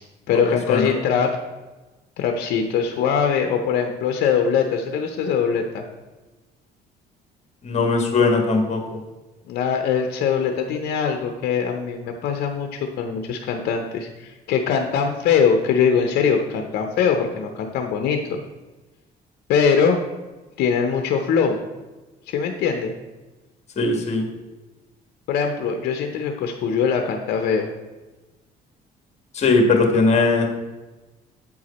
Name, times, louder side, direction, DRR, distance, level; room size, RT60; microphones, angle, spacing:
voice 1, 0.3-1.4 2.2-5.8 9.5-18.4 19.5-20.0 20.6-21.6 22.3-22.9 25.3-27.7, left 6 dB, 70° left, 5 dB, 0.7 m, -22 dB
voice 2, 7.6-8.8 23.8-24.2 29.3-30.5, left 3 dB, 40° left, 3 dB, 1.5 m, -19 dB
8.4 x 4.7 x 4.2 m, 1.2 s
cardioid pair, 110°, 17 cm